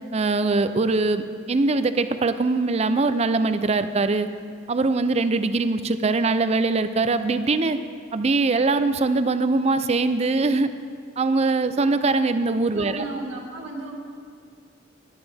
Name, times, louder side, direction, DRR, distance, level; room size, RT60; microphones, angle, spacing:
voice 1, 0.1-4.3 4.7-7.8 8.1-10.7 11.2-13.0, right 3 dB, 35° right, 11 dB, 0.5 m, -22 dB
voice 2, 12.7-14.0, right 3 dB, 85° right, -1 dB, 2.2 m, -34 dB
18.0 x 11.0 x 3.4 m, 2.1 s
head